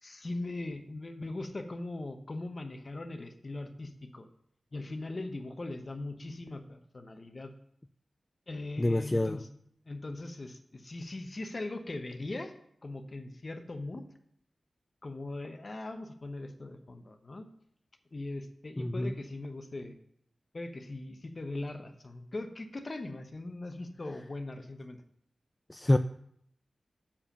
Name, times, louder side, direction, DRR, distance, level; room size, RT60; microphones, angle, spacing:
voice 1, 0.0-4.3 4.7-7.5 8.5-9.5 9.9-12.5 12.8-14.0 15.0-17.5 18.1-19.9 20.5-25.0, left 2 dB, 45° left, 7 dB, 1.0 m, -40 dB
voice 2, 8.8-9.4 18.8-19.1 25.7-26.0, left 1 dB, 20° left, 9 dB, 0.3 m, -27 dB
7.1 x 5.1 x 6.7 m, 0.69 s
cardioid pair, 60°, 0 cm